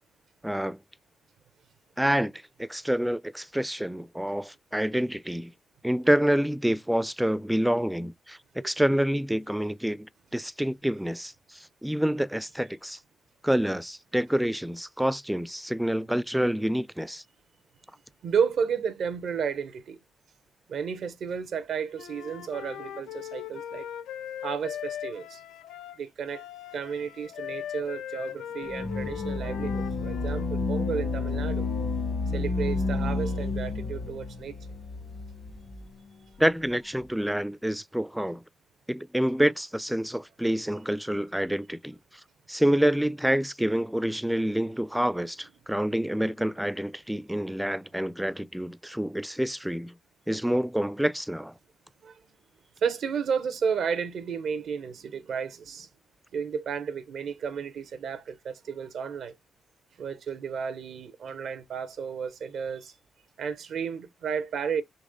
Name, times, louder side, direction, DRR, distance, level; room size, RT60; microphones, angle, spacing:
voice 1, 0.4-0.8 2.0-5.5 5.8-13.0 13.4-17.2 36.4-38.4 38.9-42.0 42.5-49.9 50.3-51.5, equal, 5° right, 0.4 m, -27 dB
voice 2, 18.2-20.0 20.7-23.9 24.4-25.4 26.0-26.4 26.7-31.7 32.3-34.5 52.0-52.2 52.8-55.9 56.3-59.4 60.0-62.9 63.4-64.8, right 6 dB, 75° right, 0.7 m, -32 dB
Wind instrument woodwind instrument, 22.0-30.5, left 10 dB, 85° left, 0.4 m, -39 dB
sound 1, 28.7-35.9, left 3 dB, 55° left, 1.0 m, -30 dB
4.1 x 3.0 x 3.6 m
supercardioid pair, 45°, 0 cm